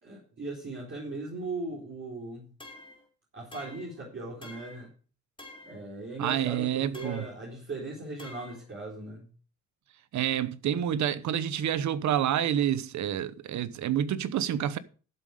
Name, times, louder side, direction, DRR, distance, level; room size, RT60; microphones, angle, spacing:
voice 1, 0.0-2.5 3.3-4.9 5.6-9.3, right 2 dB, 40° right, 4.1 m, -38 dB
sound 1, 2.6-3.1 3.5-4.0 4.4-4.9 5.4-5.8 6.9-7.4 8.2-8.6, left 2 dB, 15° left, 3.2 m, -48 dB
voice 2, 6.2-7.2 10.1-14.8, right 10 dB, 70° right, 1.0 m, -28 dB
12.5 x 7.6 x 5.0 m
cardioid pair, 90°, 30 cm